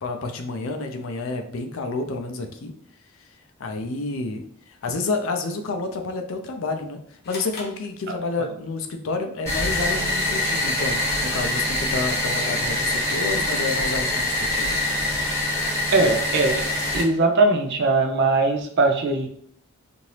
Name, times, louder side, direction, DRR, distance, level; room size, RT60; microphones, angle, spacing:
voice 1, 0.0-2.7 3.2-3.3 3.6-14.8, left 3 dB, 65° left, 4 dB, 0.5 m, -29 dB
sound 1, 7.2-8.7, left 2 dB, 50° left, 0.8 m, -41 dB
sound 2, 9.5-17.0, left 1 dB, 15° left, 1.2 m, -24 dB
voice 2, 15.9-16.6 16.9-19.3, right 3 dB, 55° right, 4 dB, 0.5 m, -20 dB
2.8 x 2.6 x 3.1 m, 0.64 s
head